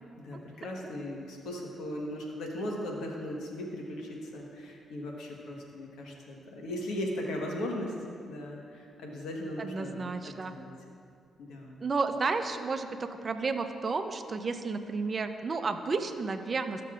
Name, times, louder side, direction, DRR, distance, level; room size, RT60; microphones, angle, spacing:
voice 1, 0.2-7.9 8.3-10.7 11.4-11.8, left 1 dB, 80° left, -1 dB, 1.3 m, -38 dB
voice 2, 9.6-10.5 11.8-16.8, right 4 dB, 40° right, 8 dB, 0.6 m, -32 dB
13.0 x 6.7 x 2.5 m, 2.3 s
cardioid pair, 70°, 0 cm